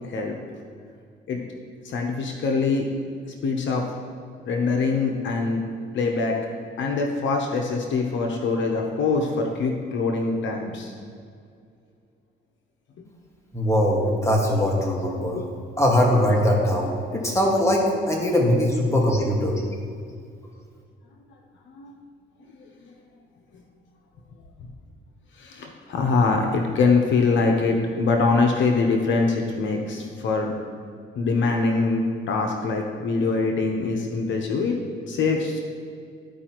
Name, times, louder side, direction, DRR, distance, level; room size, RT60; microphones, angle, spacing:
voice 1, 0.0-0.4 1.3-1.4 1.8-2.9 3.4-3.9 4.5-5.6 5.9-6.4 6.8-10.9 13.0-13.1 15.3-15.5 21.7-21.9 22.8-22.9 23.5-23.6 25.4-30.5 31.1-34.8 35.1-35.6, left 4 dB, 70° left, 2 dB, 0.8 m, -23 dB
voice 2, 13.5-15.4 15.8-19.6, equal, 15° left, -2 dB, 1.7 m, -21 dB
13.0 x 4.9 x 3.0 m, 2.3 s
cardioid pair, 90°, 20 cm